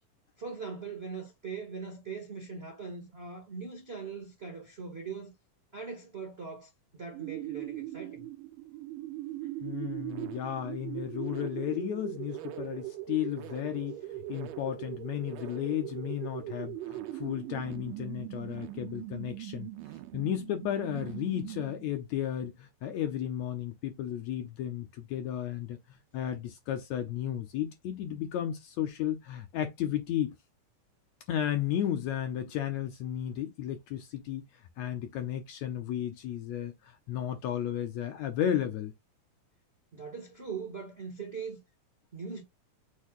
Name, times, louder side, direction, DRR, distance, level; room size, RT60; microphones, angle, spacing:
voice 1, 0.4-5.3 5.7-8.3 39.9-41.6 42.1-42.4, right 5 dB, 40° right, 0.8 m, -41 dB
sound 1, 7.1-22.0, right 14 dB, 85° right, 2.2 m, -40 dB
voice 2, 9.6-14.0 14.3-19.7 20.1-25.8 26.1-30.4 31.3-34.4 34.8-38.9, left 10 dB, 70° left, 1.8 m, -33 dB
6.4 x 2.2 x 3.6 m
omnidirectional pair, 3.6 m